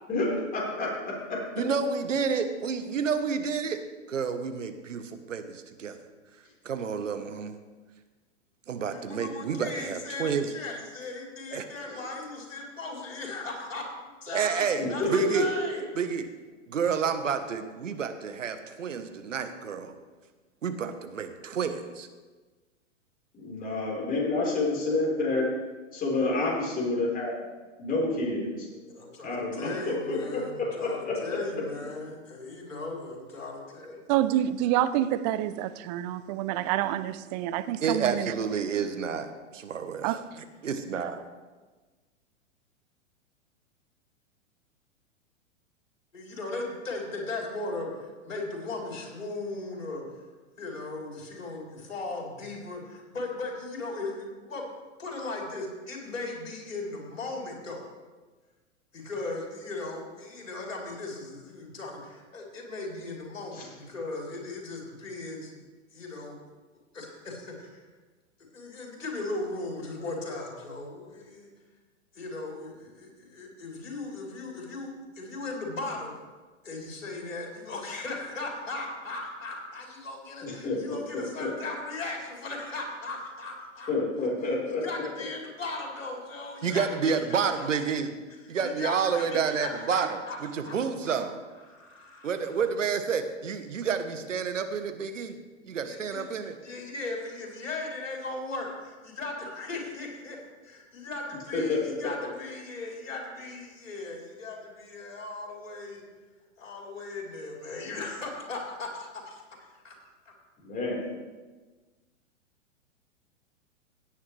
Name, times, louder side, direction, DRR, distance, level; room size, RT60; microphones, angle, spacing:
voice 1, 0.1-1.4 11.8-11.9 14.8-15.1 23.3-25.5 25.9-27.3 27.8-28.7 29.2-31.4 63.5-63.7 80.4-81.5 83.9-84.8 101.5-101.8 110.6-111.1, left 2 dB, 20° left, 4.3 m, -29 dB
voice 2, 1.6-3.8 4.1-6.0 6.6-7.5 8.7-10.5 11.5-11.7 14.3-15.5 16.0-16.3 16.7-19.9 20.6-22.1 37.8-40.2 40.6-41.2 86.6-88.1 88.5-91.4 92.2-95.4 95.6-96.6, right 6 dB, 75° right, 1.3 m, -29 dB
voice 3, 8.9-15.8 28.7-34.1 46.1-50.0 50.6-54.7 55.0-57.8 58.9-65.5 65.9-66.4 66.9-67.8 68.5-71.5 72.1-76.2 76.6-83.9 84.2-84.3 84.8-87.1 87.6-87.7 88.6-90.4 90.7-90.8 91.0-91.1 91.7-92.6 95.8-106.1 106.6-109.9, left 2 dB, 80° left, 3.9 m, -37 dB
voice 4, 34.1-38.3 40.0-40.4, right 13 dB, 35° right, 0.6 m, -27 dB
17.0 x 9.5 x 3.3 m
figure-of-eight pair, 110°, 38 cm